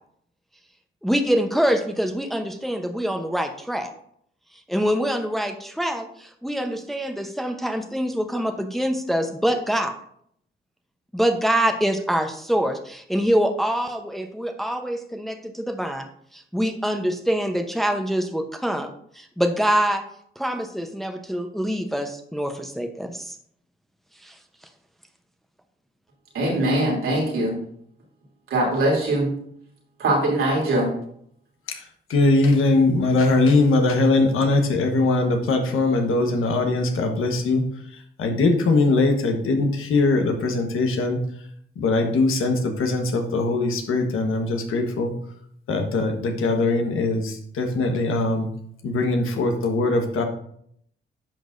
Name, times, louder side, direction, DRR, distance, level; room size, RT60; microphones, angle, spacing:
voice 1, 1.0-3.9 4.7-9.9 11.1-20.0 20.4-23.4 24.2-24.3, equal, ahead, 6 dB, 0.8 m, -25 dB
voice 2, 26.3-27.5 28.5-29.3 30.0-30.9, right 1 dB, 85° right, -3 dB, 2.9 m, -21 dB
voice 3, 32.1-37.7 38.2-41.2 41.8-45.1 45.7-48.5 48.8-50.2, left 2 dB, 85° left, 4 dB, 1.3 m, -21 dB
10.5 x 6.1 x 2.6 m, 0.68 s
cardioid pair, 80°, 21 cm